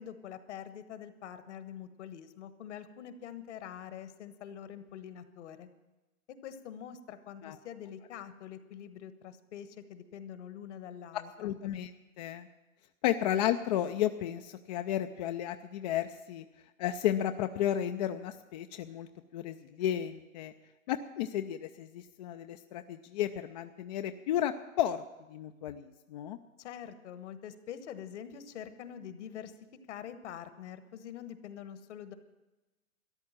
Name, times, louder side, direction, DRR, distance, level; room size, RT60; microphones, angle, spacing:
voice 1, 0.0-5.7 6.3-11.5 26.6-29.5 29.9-32.1, left 9 dB, 55° left, 11 dB, 1.4 m, -45 dB
voice 2, 11.1-11.9 12.2-12.5 13.0-16.4 16.8-19.1 19.3-20.5 20.9-26.4, left 11 dB, 30° left, 7 dB, 0.5 m, -33 dB
13.5 x 10.5 x 7.4 m, 1.1 s
hypercardioid pair, 125°, 42 cm